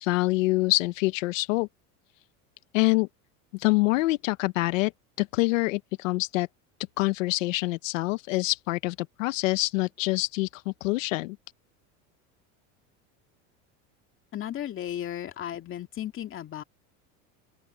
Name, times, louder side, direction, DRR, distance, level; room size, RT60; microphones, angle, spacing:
voice 1, 0.0-1.7 2.7-3.1 3.5-4.9 5.2-6.5 7.0-11.4, left 21 dB, 90° left, 0.9 m, -26 dB
voice 2, 14.3-16.6, left 11 dB, 35° left, 2.6 m, -35 dB
open air
supercardioid pair, 130°, 38 cm